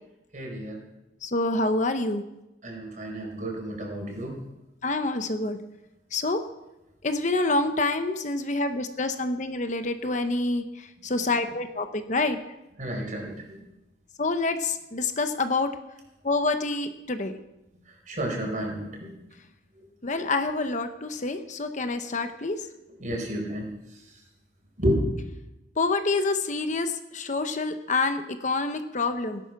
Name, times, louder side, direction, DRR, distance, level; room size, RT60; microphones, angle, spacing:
voice 1, 0.3-0.8 2.6-4.3 12.8-13.6 18.1-19.1 23.0-23.6 24.8-25.1, equal, 45° right, 1 dB, 4.6 m, -30 dB
voice 2, 1.2-2.2 4.8-5.6 6.1-6.4 7.0-12.4 14.2-15.7 16.2-17.4 20.0-22.7 25.8-29.4, left 3 dB, 45° left, 8 dB, 0.9 m, -27 dB
17.5 x 11.0 x 5.9 m, 0.95 s
head